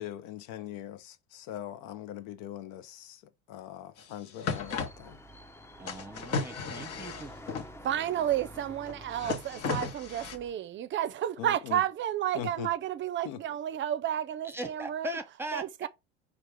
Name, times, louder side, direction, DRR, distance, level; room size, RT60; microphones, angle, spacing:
voice 1, 0.0-3.2 3.5-5.2 11.4-11.8 12.3-12.7 13.2-13.4, left 11 dB, 70° left, 0.7 m, -41 dB
sound 1, 4.0-4.1 4.3-4.9 5.9-7.7 8.9-10.4, left 5 dB, 55° left, 1.1 m, -34 dB
sound 2, 4.5-10.5, equal, 10° left, 0.5 m, -49 dB
voice 2, 5.8-7.3 14.4-15.9, right 1 dB, 10° right, 1.0 m, -39 dB
voice 3, 7.8-15.2 15.5-15.9, right 11 dB, 40° right, 0.5 m, -31 dB
4.5 x 2.4 x 4.7 m
supercardioid pair, 90°, 30 cm